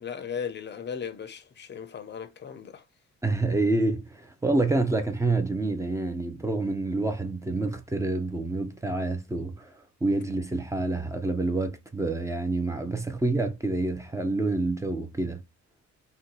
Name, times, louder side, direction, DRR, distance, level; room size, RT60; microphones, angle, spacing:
voice 1, 0.0-2.7, left 7 dB, 35° left, 0.6 m, -36 dB
voice 2, 3.2-9.7 10.0-15.4, right 2 dB, 10° right, 0.6 m, -27 dB
2.7 x 2.3 x 3.8 m
cardioid pair, 90°, 30 cm